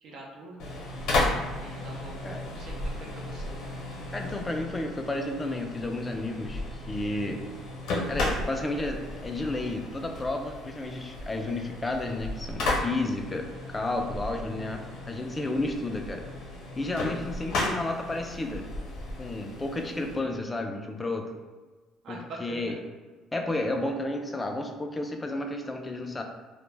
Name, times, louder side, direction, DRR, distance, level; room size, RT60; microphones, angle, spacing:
voice 1, 0.0-0.8 1.5-3.6 22.0-22.8, right 2 dB, 60° right, -1 dB, 0.5 m, -44 dB
sound 1, 0.6-20.2, left 2 dB, 70° left, 0.7 m, -34 dB
voice 2, 4.1-7.4 8.1-13.5 13.7-16.3 16.8-18.6 19.2-21.2 22.1-22.7 23.3-26.2, left 2 dB, 20° left, 3 dB, 0.3 m, -32 dB
2.1 x 2.0 x 3.2 m, 1.3 s
cardioid pair, 100°, 0 cm